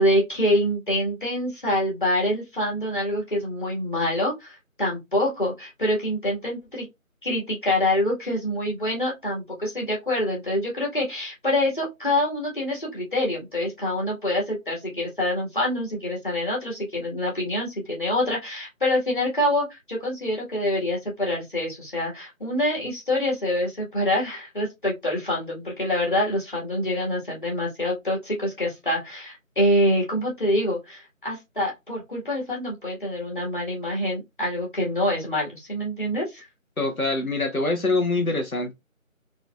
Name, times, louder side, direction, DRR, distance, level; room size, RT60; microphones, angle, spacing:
voice 1, 0.0-6.9 7.2-36.5, left 1 dB, 35° left, 1.8 m, -26 dB
voice 2, 36.8-38.7, left 2 dB, 90° left, 1.3 m, -24 dB
3.9 x 3.3 x 2.4 m
figure-of-eight pair, 170°, 41 cm